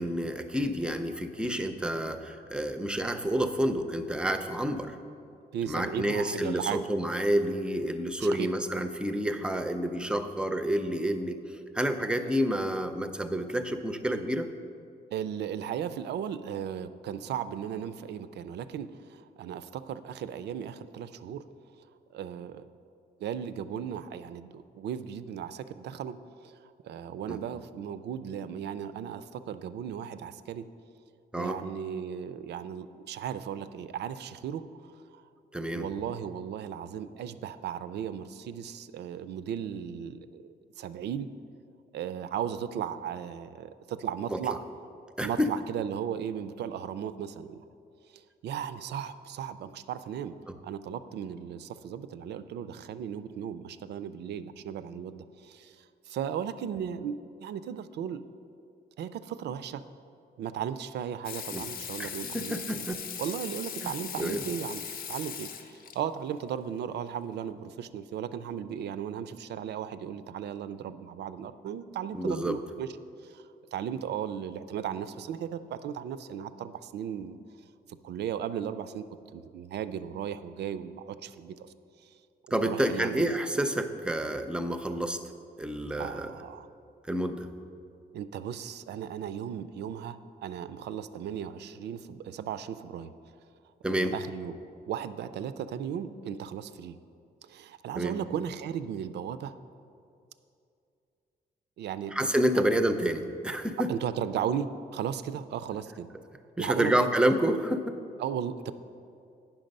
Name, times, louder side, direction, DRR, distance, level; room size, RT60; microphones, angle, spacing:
voice 1, 0.0-5.0 5.7-14.5 27.3-27.4 31.3-31.6 35.5-35.9 44.3-44.4 45.2-45.5 50.5-50.6 61.5-61.6 62.0-63.0 63.8-64.4 72.1-72.6 82.5-85.2 85.6-86.3 87.1-87.5 93.8-94.1 97.9-98.2 102.1-103.9 106.6-107.8, right 1 dB, 5° right, 8 dB, 0.4 m, -29 dB
voice 2, 5.5-6.8 8.2-8.5 12.2-12.4 15.1-21.4 22.1-22.6 23.2-26.2 26.4-30.7 31.3-35.2 35.7-41.3 41.9-44.6 45.2-47.6 48.1-50.3 50.6-58.2 59.0-59.8 60.4-62.9 63.2-72.9 73.2-73.4 73.7-77.4 77.9-79.1 79.3-81.7 82.0-82.2 82.5-83.4 86.0-86.7 88.1-93.1 93.9-94.5 94.9-97.0 97.4-99.6 101.8-102.1 103.9-106.1 106.6-107.1 108.2-108.7, right 8 dB, 80° right, 13 dB, 0.4 m, -36 dB
Water tap faucet / Sink (filling or washing), 61.2-66.0 67.5-67.6, left 8 dB, 60° left, 0.5 m, -39 dB
8.8 x 5.9 x 5.2 m, 2.5 s
cardioid pair, 135°, 17 cm